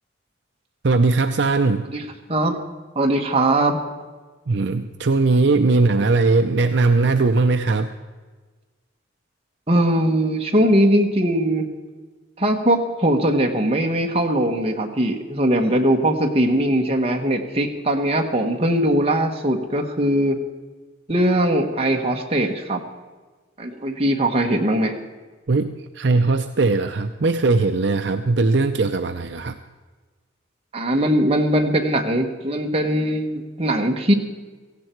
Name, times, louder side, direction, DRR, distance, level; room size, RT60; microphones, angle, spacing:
voice 1, 0.8-1.9 4.5-7.9 25.5-29.6, right 3 dB, 60° right, 8 dB, 0.6 m, -19 dB
voice 2, 2.9-3.8 9.7-11.7 12.4-20.4 21.1-22.8 23.6-24.9 30.7-34.1, right 1 dB, 30° right, 2 dB, 1.4 m, -20 dB
17.0 x 15.5 x 4.6 m, 1.4 s
head